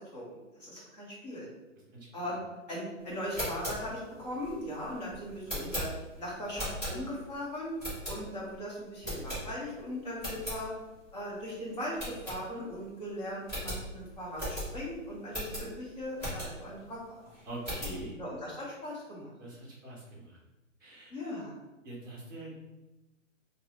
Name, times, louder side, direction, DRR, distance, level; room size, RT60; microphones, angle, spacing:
voice 1, 0.0-1.5 2.1-2.4 2.7-5.9 6.2-7.7 8.1-10.7 11.1-17.2 18.2-19.3 21.1-21.5, equal, 30° left, -6 dB, 1.1 m, -39 dB
sound 1, 3.2-7.3 7.8-8.5 9.0-9.8 10.1-10.6 11.0-11.1 11.4-11.5 11.9-12.9 13.1-13.2 13.4-16.8 17.2-18.0, equal, 10° left, 0.9 m, -38 dB
voice 2, 17.4-18.2 19.4-20.4 20.8-21.1 21.8-22.6, right 1 dB, 15° right, -6 dB, 0.7 m, -43 dB
3.1 x 2.3 x 3.1 m, 1.0 s
hypercardioid pair, 175°, 40 cm